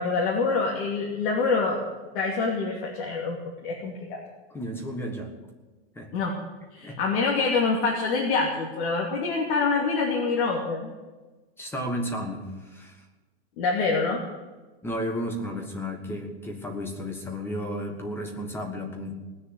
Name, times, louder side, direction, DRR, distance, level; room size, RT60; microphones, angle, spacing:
voice 1, 0.0-1.8 2.1-3.4 3.6-4.2 6.1-6.4 6.7-10.9 13.6-14.2, left 4 dB, 50° left, -2 dB, 2.9 m, -26 dB
voice 2, 4.5-5.3 5.9-6.1 6.8-7.0 11.6-13.0 14.8-19.1, equal, 5° left, 3 dB, 1.5 m, -33 dB
19.0 x 6.9 x 9.8 m, 1.2 s
supercardioid pair, 165°, 33 cm